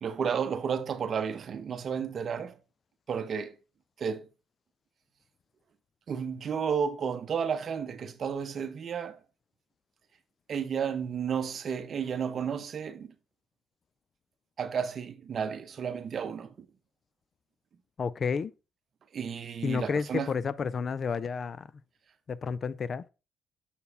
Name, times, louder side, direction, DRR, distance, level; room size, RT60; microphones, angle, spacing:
voice 1, 0.0-2.6 3.1-3.5 4.0-4.3 6.1-9.2 10.5-13.1 14.6-16.7 19.1-20.3, right 7 dB, 55° right, 0.8 m, -32 dB
voice 2, 18.0-18.5 19.6-21.7 22.3-23.0, left 5 dB, 45° left, 0.3 m, -31 dB
6.8 x 4.6 x 3.4 m
cardioid pair, 90°, 0 cm